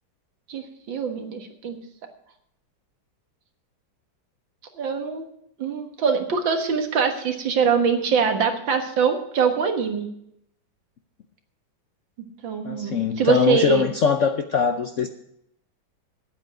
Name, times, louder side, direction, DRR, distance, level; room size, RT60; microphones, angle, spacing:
voice 1, 0.5-1.8 4.7-5.3 5.6-10.1 12.4-13.8, right 6 dB, 70° right, 5 dB, 2.2 m, -23 dB
voice 2, 12.6-15.1, left 6 dB, 75° left, 6 dB, 0.7 m, -22 dB
10.5 x 8.6 x 7.8 m, 0.75 s
omnidirectional pair, 2.2 m